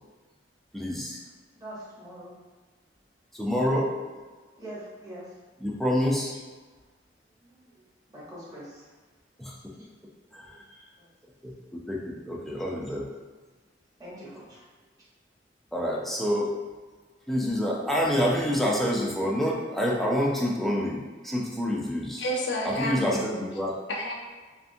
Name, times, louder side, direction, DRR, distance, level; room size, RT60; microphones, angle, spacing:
voice 1, 0.7-1.2 3.3-3.9 5.6-6.3 9.4-9.6 10.3-10.6 11.4-11.5 11.9-13.0 15.7-16.5 17.3-22.3 22.6-23.8, equal, ahead, -3 dB, 0.4 m, -27 dB
voice 2, 1.6-2.4 4.6-5.3 7.4-7.7 8.1-8.9 9.8-9.9 10.4-11.1 14.0-14.9, right 1 dB, 20° right, -8 dB, 0.9 m, -44 dB
voice 3, 22.2-23.5 23.9-24.1, equal, 75° left, 0 dB, 0.5 m, -30 dB
2.6 x 2.3 x 2.6 m, 1.4 s
head